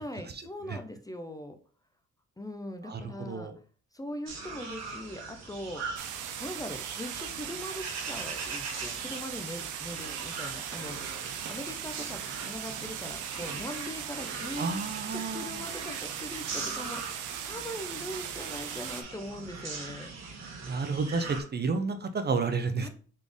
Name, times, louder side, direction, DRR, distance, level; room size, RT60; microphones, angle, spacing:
voice 1, 0.0-1.6 2.4-3.5 3.9-5.8 6.4-11.0 11.5-14.8 15.1-20.1 22.8-22.9, left 1 dB, 10° left, 7 dB, 0.5 m, -41 dB
sound 1, 4.3-21.4, right 4 dB, 60° right, 1.3 m, -41 dB
sound 2, 6.0-19.0, right 9 dB, 85° right, 0.6 m, -39 dB
voice 2, 14.6-15.6 20.6-22.9, right 4 dB, 35° right, 9 dB, 0.5 m, -30 dB
4.2 x 3.3 x 3.4 m, 0.42 s
cardioid pair, 90°, 30 cm